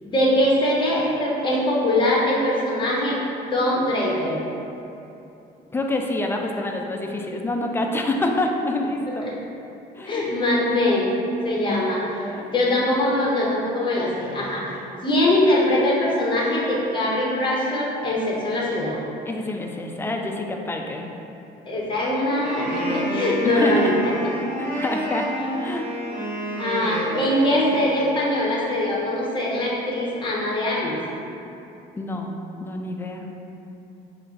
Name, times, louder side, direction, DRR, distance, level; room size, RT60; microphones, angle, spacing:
voice 1, 0.0-3.2 3.5-4.4 9.2-9.3 10.0-11.1 11.4-12.0 12.5-14.7 15.0-19.0 21.7-24.1 25.4-25.5 26.6-31.0, left 1 dB, 30° left, -4 dB, 0.9 m, -22 dB
voice 2, 5.7-9.3 10.0-10.2 11.7-12.5 19.3-21.1 23.4-24.0 24.6-25.9 32.0-32.3 32.6-33.3, left 2 dB, 15° left, 2 dB, 0.3 m, -27 dB
Wind instrument woodwind instrument, 22.2-28.1, right 1 dB, 85° right, 1.3 m, -30 dB
4.3 x 2.5 x 3.8 m, 2.8 s
cardioid pair, 110°, 17 cm